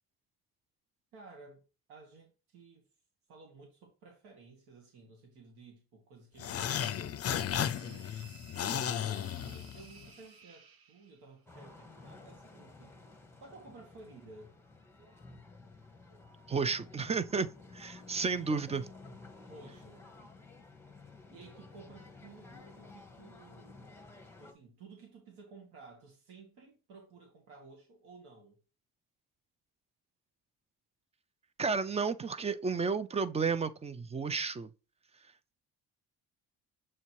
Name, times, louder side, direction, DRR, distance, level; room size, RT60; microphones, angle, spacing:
voice 1, 1.1-1.6 1.9-2.8 3.3-13.0 13.4-14.5 19.4-20.1 21.3-28.6, right 3 dB, 90° right, 1.7 m, -55 dB
sound 1, 6.4-10.1, left 9 dB, 40° left, 0.5 m, -34 dB
sound 2, 7.2-11.4, right 7 dB, 75° right, 1.4 m, -58 dB
sound 3, 11.5-24.5, left 3 dB, 5° left, 0.9 m, -53 dB
voice 2, 16.5-17.5 17.7-18.9 31.6-34.7, right 5 dB, 20° right, 0.3 m, -32 dB
7.4 x 2.8 x 4.5 m
cardioid pair, 125°, 38 cm